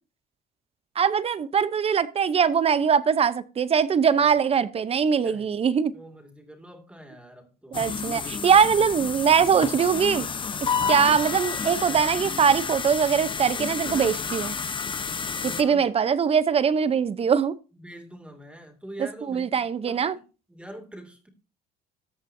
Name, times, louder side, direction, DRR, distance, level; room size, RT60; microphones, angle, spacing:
voice 1, 1.0-5.9 7.7-10.3 10.9-14.6 15.4-17.5 19.3-20.2, right 7 dB, 35° right, 0.8 m, -22 dB
voice 2, 5.9-7.8 15.4-15.8 17.7-20.2 20.5-21.3, right 1 dB, 5° right, 2.5 m, -44 dB
sound 1, 7.7-15.6, left 5 dB, 30° left, 0.9 m, -30 dB
14.0 x 8.1 x 2.7 m
cardioid pair, 110°, 17 cm